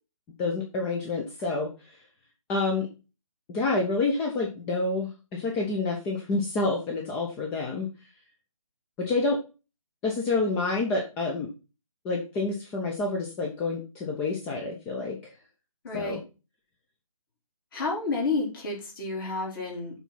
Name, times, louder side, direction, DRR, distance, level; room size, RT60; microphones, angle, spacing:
voice 1, 0.4-1.7 2.5-2.9 3.5-7.9 9.0-9.4 10.0-11.5 12.0-15.3 15.9-16.2, left 3 dB, 10° left, -1 dB, 0.6 m, -28 dB
voice 2, 15.8-16.2 17.7-20.0, left 3 dB, 40° left, -2 dB, 3.8 m, -30 dB
7.0 x 4.1 x 5.8 m, 0.31 s
figure-of-eight pair, 155°, 18 cm